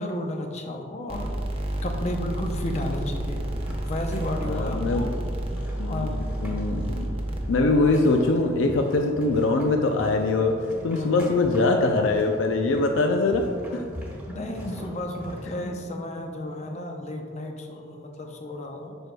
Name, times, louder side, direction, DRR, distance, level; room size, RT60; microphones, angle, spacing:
voice 1, 0.0-1.3 1.8-3.4 3.8-5.1 5.9-6.2 10.9-11.2 13.8-13.9 14.3-19.0, left 1 dB, 35° left, 3 dB, 0.6 m, -32 dB
sound 1, 1.1-7.9, right 1 dB, 30° right, 0.6 m, -30 dB
sound 2, 2.7-15.4, equal, 10° right, 1.3 m, -41 dB
voice 2, 4.4-5.1 5.8-7.2 7.5-10.5 10.8-13.5 13.7-13.8, left 3 dB, 80° left, 3 dB, 0.4 m, -23 dB
7.8 x 6.1 x 2.2 m, 2.2 s
head